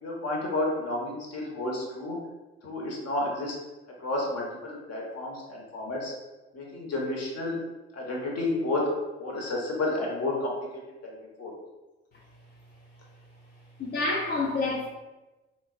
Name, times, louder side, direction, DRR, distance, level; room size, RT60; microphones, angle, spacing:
voice 1, 0.0-2.2 2.6-3.5 4.0-6.1 6.5-7.6 7.9-8.8 9.2-10.5 11.0-11.5, left 2 dB, 45° left, -2 dB, 1.0 m, -31 dB
voice 2, 13.8-14.9, left 3 dB, 30° left, -4 dB, 0.6 m, -28 dB
3.8 x 2.0 x 2.5 m, 1.1 s
figure-of-eight pair, 40°, 33 cm